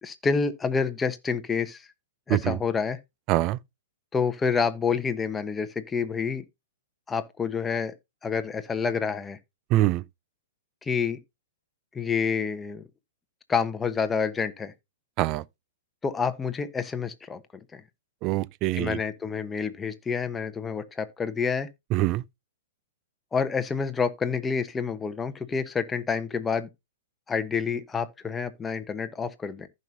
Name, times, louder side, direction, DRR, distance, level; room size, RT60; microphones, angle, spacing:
voice 1, 0.0-1.9 2.3-3.0 4.1-6.4 7.1-7.9 8.2-9.4 10.8-11.2 11.9-12.8 13.5-14.7 16.0-17.4 17.7-17.8 18.7-21.7 23.3-26.7 27.3-29.7, left 5 dB, 15° left, 1.0 m, -28 dB
voice 2, 3.3-3.6 9.7-10.0 15.2-15.4 18.2-19.0 21.9-22.2, right 17 dB, 40° right, 0.4 m, -24 dB
15.0 x 5.4 x 2.7 m
hypercardioid pair, 110°, 0 cm